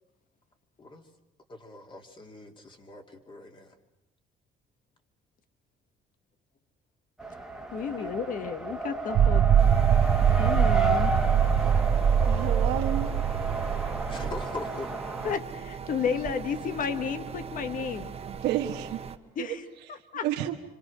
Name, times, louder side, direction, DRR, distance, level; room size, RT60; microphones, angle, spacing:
voice 1, 1.5-3.7 8.0-8.4 9.4-9.5 14.1-15.0, left 2 dB, 30° left, 3 dB, 2.8 m, -42 dB
Race car auto racing, 7.2-15.4, right 2 dB, 5° right, 1.8 m, -32 dB
voice 2, 7.7-9.4 10.4-11.1 15.2-18.1 19.4-19.6 19.9-20.2, left 6 dB, 55° left, 10 dB, 1.7 m, -32 dB
sound 1, 9.1-14.4, right 8 dB, 60° right, 1.4 m, -23 dB
sound 2, 9.6-19.2, right 7 dB, 35° right, 1.4 m, -40 dB
voice 3, 12.2-13.2 18.2-19.0 19.4-19.5 19.9-20.6, right 12 dB, 90° right, 2 dB, 1.4 m, -31 dB
26.0 x 26.0 x 6.4 m, 0.91 s
cardioid pair, 110°, 17 cm